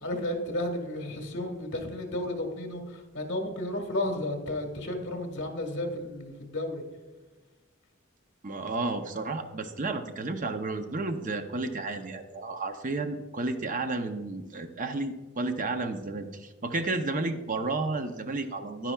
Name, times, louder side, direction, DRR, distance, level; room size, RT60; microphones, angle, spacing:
voice 1, 0.0-6.8, left 1 dB, 60° left, 4 dB, 1.6 m, -33 dB
voice 2, 8.4-18.9, right 3 dB, 40° right, 7 dB, 0.6 m, -32 dB
10.5 x 9.9 x 2.3 m, 1.3 s
head